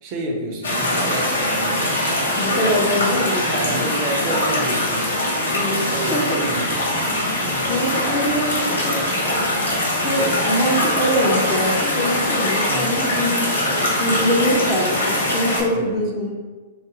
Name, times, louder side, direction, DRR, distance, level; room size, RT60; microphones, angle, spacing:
voice 1, 0.0-2.1 2.7-3.0 3.5-5.2 5.9-6.7 12.7-12.9 15.7-16.0, right 2 dB, 40° right, 1 dB, 0.5 m, -29 dB
sound 1, 0.6-15.6, left 1 dB, 80° left, 0.7 m, -22 dB
voice 2, 2.4-3.7 5.5-6.4 7.7-9.0 9.9-13.6 14.0-16.3, equal, 30° left, -4 dB, 0.5 m, -23 dB
2.5 x 2.4 x 2.8 m, 1.3 s
figure-of-eight pair, 105°, 0 cm